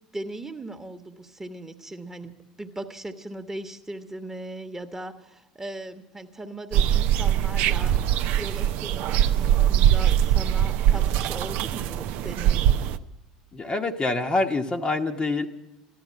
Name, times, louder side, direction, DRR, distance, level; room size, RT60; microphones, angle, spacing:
voice 1, 0.1-12.7, right 1 dB, 15° right, 7 dB, 1.2 m, -38 dB
sound 1, 6.7-13.0, right 11 dB, 55° right, 0.5 m, -22 dB
voice 2, 13.5-15.5, left 2 dB, 25° left, 4 dB, 1.0 m, -26 dB
13.5 x 12.0 x 7.4 m, 0.96 s
figure-of-eight pair, 70°, 3 cm